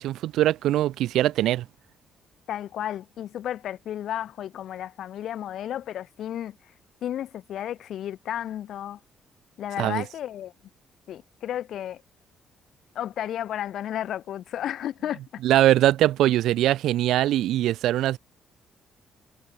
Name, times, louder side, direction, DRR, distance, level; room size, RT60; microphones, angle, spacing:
voice 1, 0.0-1.6 9.8-10.0 15.4-18.2, right 13 dB, 85° right, 0.8 m, -22 dB
voice 2, 2.5-6.7 7.0-9.0 9.6-10.5 11.1-12.0 13.0-15.4, left 11 dB, 60° left, 2.0 m, -33 dB
cardioid pair, 165°, 0 cm